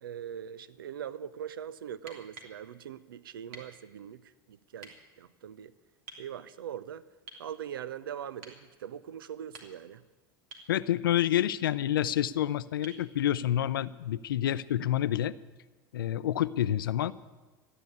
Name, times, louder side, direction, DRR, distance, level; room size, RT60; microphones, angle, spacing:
voice 1, 0.0-5.7 6.2-7.0 7.4-10.0, right 9 dB, 85° right, 17 dB, 0.5 m, -41 dB
sound 1, 2.0-2.6 3.5-3.7 4.8-5.0 6.1-6.3 7.3-7.5 8.4-8.6 9.4-10.0 10.5-10.7 12.8-13.1 14.9-15.0, right 3 dB, 65° right, 3.0 m, -48 dB
voice 2, 10.7-15.3 15.9-17.1, left 11 dB, 80° left, 15 dB, 0.5 m, -28 dB
14.0 x 9.8 x 9.4 m, 1.3 s
hypercardioid pair, 85°, 11 cm